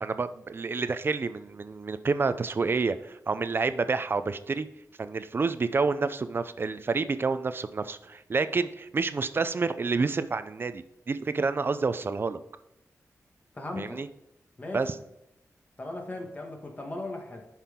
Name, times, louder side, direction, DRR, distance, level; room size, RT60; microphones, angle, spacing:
voice 1, 0.0-4.7 5.0-12.4 13.8-14.1 14.7-14.9, right 4 dB, 40° right, 12 dB, 0.5 m, -29 dB
voice 2, 13.5-14.0 14.6-14.9 15.8-17.5, left 2 dB, 25° left, 2 dB, 1.7 m, -37 dB
10.0 x 5.8 x 3.7 m, 0.88 s
wide cardioid pair, 130°, 6 cm